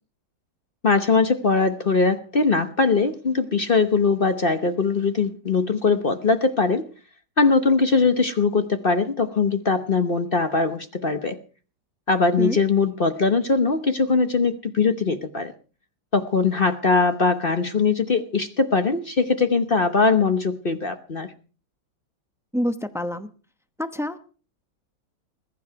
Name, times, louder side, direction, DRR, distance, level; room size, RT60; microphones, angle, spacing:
voice 1, 0.8-6.9 7.4-11.4 12.1-15.5 16.1-21.3, left 4 dB, 40° left, 8 dB, 0.8 m, -21 dB
voice 2, 22.5-23.3 23.8-24.2, equal, 5° right, 9 dB, 0.3 m, -27 dB
20.5 x 11.0 x 4.7 m, 0.39 s
omnidirectional pair, 2.1 m